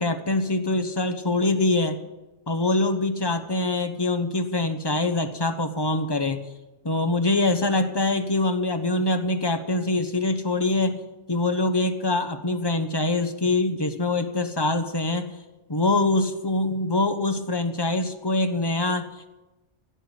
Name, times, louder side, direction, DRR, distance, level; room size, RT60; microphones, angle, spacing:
voice 1, 0.0-2.0 2.5-6.4 6.8-11.0 11.3-15.3 15.7-19.1, left 2 dB, 20° left, 8 dB, 1.1 m, -24 dB
16.0 x 6.7 x 9.8 m, 1.0 s
omnidirectional pair, 1.2 m